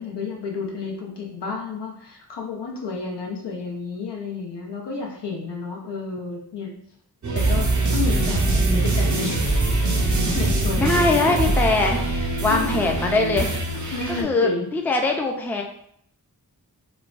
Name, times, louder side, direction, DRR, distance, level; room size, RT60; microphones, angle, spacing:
voice 1, 0.0-6.8 7.3-9.5 10.1-11.5 12.5-12.8 13.9-14.7, left 4 dB, 85° left, -2 dB, 0.7 m, -31 dB
sound 1, 7.2-14.2, right 2 dB, 50° right, 0.5 m, -22 dB
voice 2, 8.6-8.9 10.8-13.6 14.1-15.6, left 3 dB, 5° left, 2 dB, 0.3 m, -22 dB
3.1 x 2.1 x 2.4 m, 0.69 s
wide cardioid pair, 55°, 40 cm